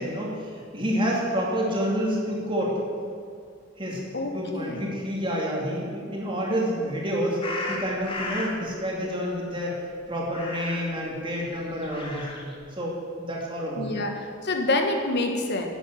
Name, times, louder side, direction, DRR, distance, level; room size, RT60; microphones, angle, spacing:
voice 1, 0.0-2.7 3.8-4.0 4.3-7.4 7.7-9.8 10.1-13.9, equal, 25° right, -3 dB, 2.5 m, -28 dB
voice 2, 4.1-4.9 13.8-15.7, left 2 dB, 55° left, 4 dB, 1.4 m, -27 dB
sound 1, 7.4-8.6 10.3-11.0 11.7-12.6, left 2 dB, 25° left, 1.8 m, -34 dB
11.0 x 8.0 x 7.9 m, 2.2 s
head